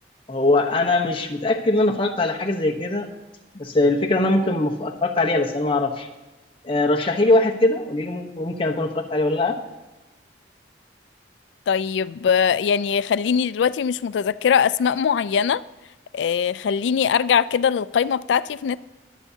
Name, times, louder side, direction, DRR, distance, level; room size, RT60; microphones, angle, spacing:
voice 1, 0.3-3.1 3.5-6.1 6.6-9.6, left 2 dB, 30° left, 0.9 m, -21 dB
voice 2, 11.7-15.6 16.1-18.8, left 7 dB, 75° left, 0.3 m, -21 dB
22.5 x 8.1 x 2.8 m
head